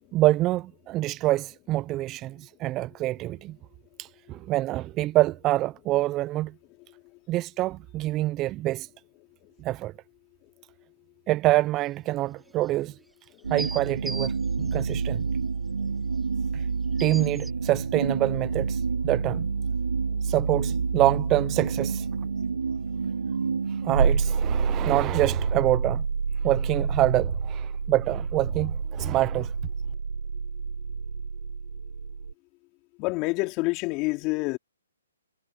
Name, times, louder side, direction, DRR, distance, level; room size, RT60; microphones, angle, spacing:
voice 1, 0.1-3.6 4.0-6.5 7.3-8.9 9.6-9.9 11.3-12.9 13.5-15.3 16.5-16.6 17.0-19.5 20.2-22.1 23.8-26.0 26.4-29.5, right 16 dB, 20° right, 0.5 m, -26 dB
sound 1, 11.9-12.0 12.5-12.7 13.1-13.2 13.4-15.0 16.2-16.3 17.0-17.5, right 2 dB, 5° right, 7.8 m, -39 dB
sound 2, 13.4-32.3, right 5 dB, 85° right, 2.1 m, -28 dB
voice 2, 33.0-34.6, left 25 dB, 30° left, 3.8 m, -27 dB
hypercardioid pair, 145°, 0 cm